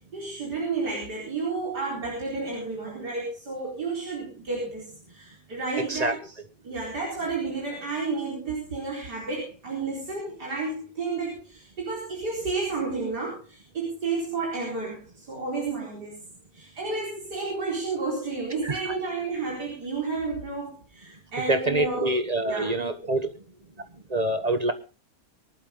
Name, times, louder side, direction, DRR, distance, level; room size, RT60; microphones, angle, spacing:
voice 1, 0.0-6.3 6.6-16.2 16.5-22.1 22.4-22.9, right 3 dB, 85° right, -3 dB, 5.2 m, -31 dB
voice 2, 18.6-18.9 21.5-23.3 24.1-24.7, right 2 dB, 25° right, 10 dB, 1.2 m, -26 dB
23.0 x 11.5 x 3.8 m, 0.32 s
omnidirectional pair, 1.7 m